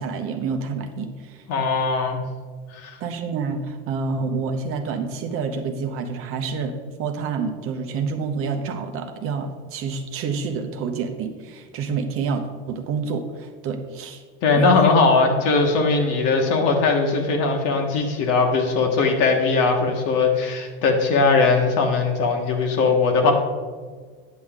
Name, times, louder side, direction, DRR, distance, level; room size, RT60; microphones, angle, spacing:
voice 1, 0.0-1.4 3.0-14.2 14.5-15.0, right 5 dB, 45° right, 5 dB, 0.8 m, -28 dB
voice 2, 1.5-2.2 2.7-3.0 14.4-23.3, left 4 dB, 55° left, 2 dB, 1.4 m, -20 dB
9.3 x 6.4 x 3.6 m, 1.5 s
supercardioid pair, 120°, 29 cm